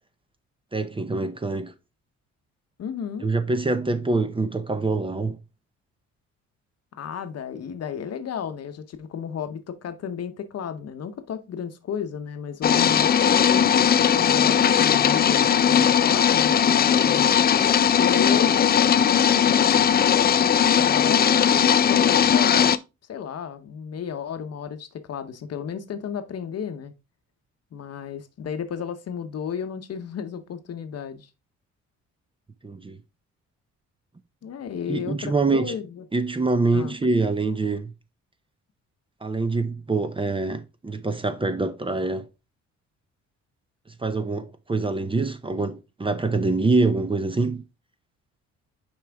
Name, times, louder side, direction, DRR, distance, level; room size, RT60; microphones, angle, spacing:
voice 1, 0.7-1.7 3.2-5.4 32.6-33.0 34.9-35.7 36.1-37.9 39.2-42.3 44.0-47.6, right 3 dB, 15° right, 0.7 m, -25 dB
voice 2, 2.8-3.3 6.9-17.4 18.0-21.4 21.8-22.8 23.1-26.9 27.7-31.3 34.4-36.0 36.7-36.9, left 7 dB, 55° left, 0.9 m, -33 dB
sound 1, 12.6-22.8, left 8 dB, 30° left, 0.4 m, -19 dB
5.9 x 4.9 x 3.4 m
cardioid pair, 90°, 30 cm